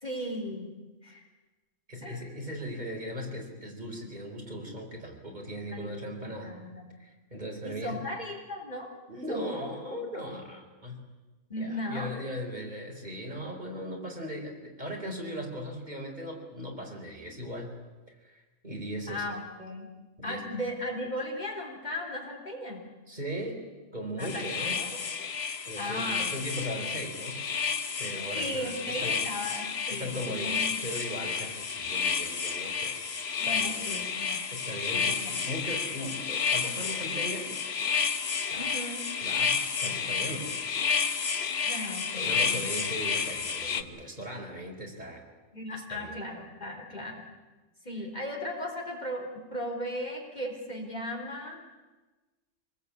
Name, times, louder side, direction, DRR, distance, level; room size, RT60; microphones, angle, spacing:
voice 1, 0.0-0.8 1.0-1.2 2.0-2.2 5.7-6.9 7.6-8.9 9.3-9.7 10.0-10.1 11.5-12.1 19.1-19.9 20.2-22.9 24.2-24.9 25.8-26.3 28.3-30.8 31.2-31.3 33.4-34.4 34.9-35.4 38.6-39.1 41.7-42.7 45.5-47.2 47.8-51.6, left 1 dB, 35° left, 1 dB, 4.1 m, -37 dB
voice 2, 1.9-6.5 7.0-8.0 9.1-11.0 11.6-17.7 18.2-19.2 20.2-20.4 23.1-23.6 23.9-24.8 25.2-25.3 25.6-27.4 28.0-29.2 29.9-34.0 34.5-37.6 38.5-38.8 39.2-40.5 40.9-41.1 42.2-45.2 45.7-46.2, equal, 35° right, 0 dB, 4.5 m, -38 dB
sound 1, 24.2-43.8, left 6 dB, 55° left, 1.3 m, -31 dB
26.5 x 20.0 x 8.6 m, 1.2 s
omnidirectional pair, 1.4 m